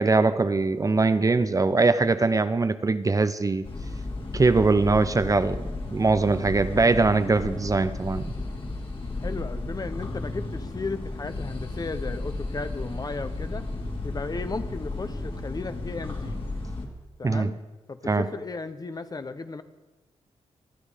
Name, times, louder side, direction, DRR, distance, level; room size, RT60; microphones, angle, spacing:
voice 1, 0.0-3.6 4.3-8.3 17.2-17.5 18.1-18.3, right 3 dB, 30° right, 12 dB, 0.7 m, -22 dB
sound 1, 3.6-16.9, left 2 dB, 50° left, 2.7 m, -34 dB
voice 2, 9.2-13.7 14.0-16.4 17.2-17.5 17.9-19.6, left 3 dB, 35° left, 11 dB, 0.9 m, -35 dB
26.0 x 9.6 x 5.1 m, 1.2 s
cardioid pair, 95°, 12 cm